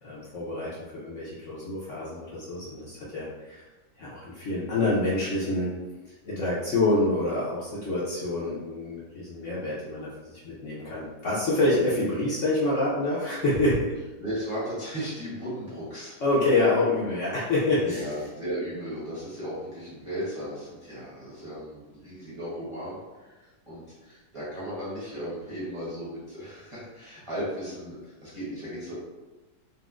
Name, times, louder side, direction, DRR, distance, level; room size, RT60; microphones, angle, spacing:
voice 1, 0.0-3.6 4.0-5.7 6.2-13.9 16.2-18.1, left 2 dB, 60° left, -8 dB, 0.8 m, -27 dB
voice 2, 14.2-16.2 17.8-28.9, equal, 25° right, -10 dB, 0.8 m, -36 dB
4.1 x 2.0 x 2.4 m, 1.2 s
omnidirectional pair, 1.8 m